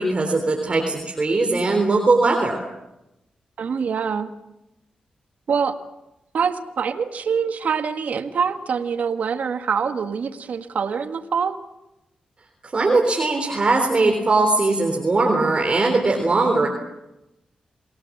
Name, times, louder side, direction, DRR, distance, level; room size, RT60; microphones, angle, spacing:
voice 1, 0.0-2.6 12.6-16.7, right 3 dB, 40° right, 2 dB, 3.6 m, -20 dB
voice 2, 3.6-4.3 5.5-5.8 6.3-11.6, right 6 dB, 70° right, 8 dB, 1.7 m, -24 dB
28.5 x 18.0 x 7.4 m, 0.93 s
cardioid pair, 55°, 3 cm